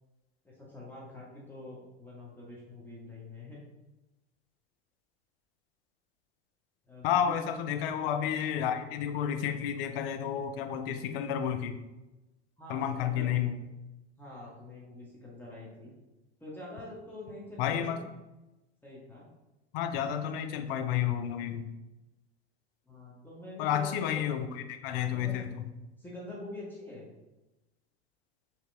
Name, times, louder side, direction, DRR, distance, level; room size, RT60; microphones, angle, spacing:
voice 1, 0.4-3.6 6.8-7.6 12.6-13.6 14.2-15.9 16.4-17.9 18.8-19.3 22.9-24.3 25.1-25.4 26.0-27.1, left 2 dB, 5° left, -6 dB, 0.9 m, -45 dB
voice 2, 7.0-11.8 12.7-13.6 17.6-18.0 19.7-21.6 23.6-25.7, left 9 dB, 60° left, 7 dB, 0.5 m, -31 dB
3.6 x 2.9 x 3.3 m, 1.0 s
hypercardioid pair, 90°, 33 cm